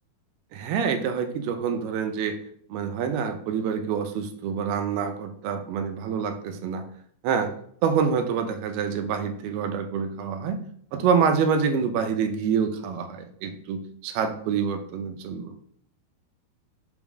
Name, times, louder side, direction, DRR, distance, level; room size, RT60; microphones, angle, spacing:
voice 1, 0.5-2.4 2.7-6.9 7.2-7.5 7.8-10.7 10.9-15.5, right 6 dB, 80° right, 7 dB, 2.6 m, -26 dB
6.2 x 3.7 x 6.0 m, 0.63 s
omnidirectional pair, 4.6 m